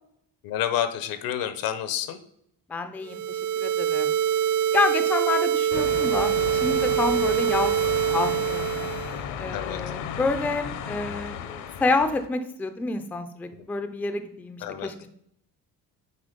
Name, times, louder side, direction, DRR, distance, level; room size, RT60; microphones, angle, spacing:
voice 1, 0.4-2.2 9.5-9.8 13.6-13.7 14.6-14.9, left 10 dB, 85° left, 11 dB, 1.0 m, -29 dB
voice 2, 2.7-4.1 4.7-7.7 8.1-9.0 9.4-15.1, left 3 dB, 5° left, 9 dB, 0.3 m, -28 dB
sound 1, 3.0-9.2, right 10 dB, 70° right, 0.6 m, -24 dB
sound 2, 5.7-12.3, left 8 dB, 60° left, 0.7 m, -34 dB
8.8 x 4.2 x 5.1 m, 0.72 s
cardioid pair, 180°, 35 cm